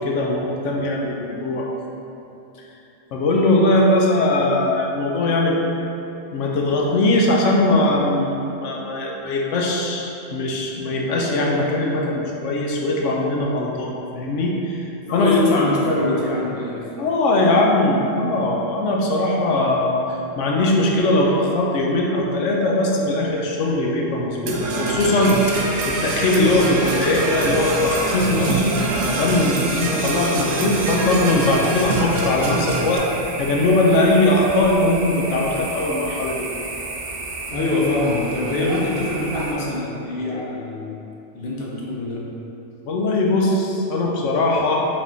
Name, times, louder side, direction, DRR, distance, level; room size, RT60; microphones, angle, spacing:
voice 1, 0.0-1.7 3.1-5.7 6.3-15.3 17.0-28.8 29.0-33.0 33.4-36.5 42.8-44.8, left 2 dB, 85° left, -1 dB, 1.0 m, -20 dB
voice 2, 15.1-16.9 37.5-40.9 41.3-42.3, left 2 dB, 60° left, -4 dB, 0.9 m, -23 dB
Percussion / Brass instrument, 24.5-33.0, right 2 dB, 85° right, 0.9 m, -25 dB
sound 1, 25.2-39.5, right 2 dB, 60° right, 0.7 m, -31 dB
5.1 x 3.5 x 2.6 m, 2.9 s
omnidirectional pair, 1.2 m